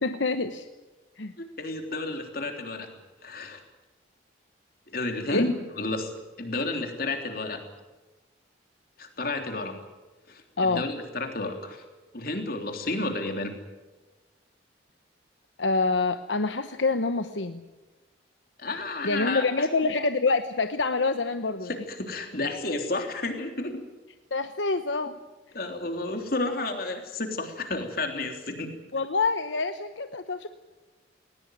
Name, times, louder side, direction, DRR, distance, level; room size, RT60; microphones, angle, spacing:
voice 1, 0.0-0.7 1.2-1.4 5.3-5.5 10.6-10.8 15.6-17.6 19.0-21.7 24.3-25.1 28.9-30.5, left 3 dB, 75° left, 9 dB, 1.0 m, -26 dB
voice 2, 1.4-2.9 3.2-3.6 4.9-7.6 9.0-9.8 10.3-11.8 12.1-13.6 18.6-19.7 21.6-23.8 25.5-28.8, left 2 dB, 50° left, 5 dB, 3.4 m, -31 dB
20.0 x 19.5 x 9.4 m, 1.2 s
head